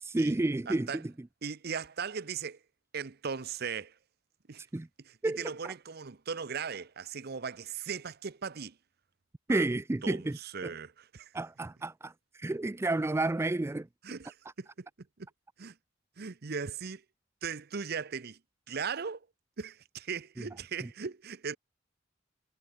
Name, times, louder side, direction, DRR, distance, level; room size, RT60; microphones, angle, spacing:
voice 1, 0.0-0.9 4.7-4.9 5.2-5.7 9.5-10.4 10.6-10.7 11.3-13.9 20.4-20.5 20.8-20.9, right 2 dB, 15° right, 0.3 m, -31 dB
voice 2, 0.7-1.0 1.4-2.6 2.9-4.0 4.5-4.6 5.0-8.8 9.5-9.7 10.0-11.3 14.0-14.9 15.2-15.3 15.6-15.8 16.2-17.0 17.4-18.4 18.7-19.3 19.6-21.6, right 6 dB, 55° right, 0.8 m, -38 dB
head